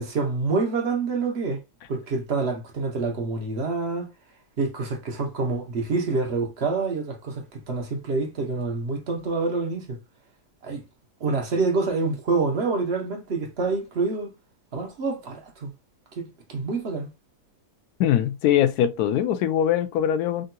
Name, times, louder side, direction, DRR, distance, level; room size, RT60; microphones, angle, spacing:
voice 1, 0.0-1.6 1.9-4.1 4.6-10.0 10.6-10.8 11.2-14.3 14.7-15.7 16.2-17.1, right 4 dB, 50° right, 1.0 m, -27 dB
voice 2, 18.0-20.5, left 10 dB, 75° left, 1.0 m, -22 dB
3.7 x 2.7 x 2.2 m
omnidirectional pair, 1.7 m